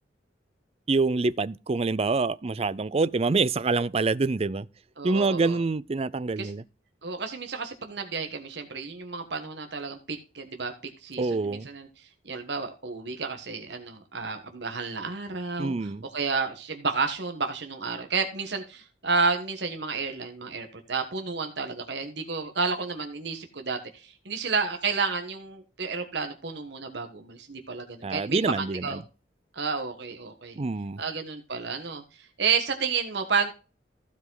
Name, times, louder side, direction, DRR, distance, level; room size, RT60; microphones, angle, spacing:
voice 1, 0.9-4.7 5.0-6.6 11.2-11.7 15.6-16.0 28.0-29.0 30.6-31.0, right 3 dB, 35° right, 0.5 m, -26 dB
voice 2, 5.0-5.6 6.4-6.5 7.0-10.7 11.0-11.9 12.2-29.0 29.5-30.6 31.0-32.0 32.4-33.5, right 4 dB, 65° right, 1.4 m, -31 dB
15.5 x 5.2 x 3.9 m
head